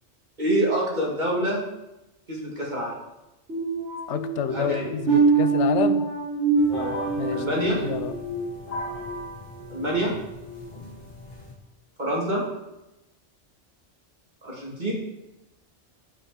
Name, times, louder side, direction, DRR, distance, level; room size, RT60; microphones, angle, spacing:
voice 1, 0.4-1.6 2.3-3.0 4.5-4.9 6.7-6.9 7.3-7.8 9.7-10.1 12.0-12.4 14.4-14.9, right 1 dB, 40° right, -4 dB, 2.5 m, -26 dB
sound 1, 3.5-9.1 9.6-9.9 10.4-10.6, right 5 dB, 80° right, 4.6 m, -25 dB
voice 2, 4.1-6.0 7.2-8.1, left 8 dB, 75° left, 10 dB, 1.0 m, -28 dB
sound 2, 6.6-11.5, left 1 dB, 55° left, 2.0 m, -37 dB
7.9 x 7.8 x 4.9 m, 0.95 s
omnidirectional pair, 1.2 m